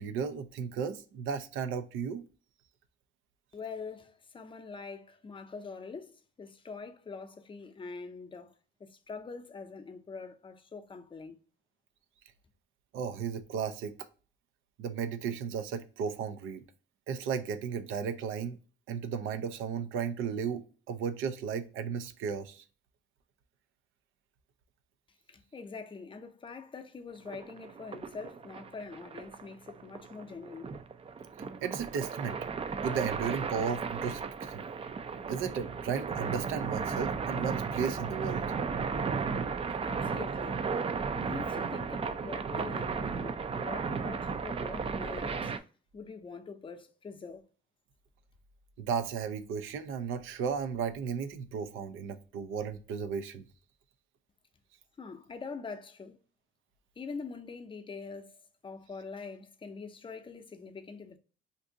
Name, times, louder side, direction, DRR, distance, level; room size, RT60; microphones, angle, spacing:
voice 1, 0.0-2.2 12.9-14.0 14.8-16.6 17.1-18.6 18.9-22.6 31.6-32.4 32.8-34.7 35.3-38.4 48.8-53.4, right 6 dB, 85° right, 0.5 m, -34 dB
voice 2, 3.5-8.5 8.8-11.4 25.3-30.8 39.8-40.6 41.1-45.5 45.9-47.5 55.0-56.2 57.0-61.2, left 4 dB, 25° left, 0.5 m, -44 dB
sound 1, 27.3-45.6, right 5 dB, 30° right, 0.4 m, -35 dB
2.6 x 2.5 x 3.7 m
cardioid pair, 90°, 20 cm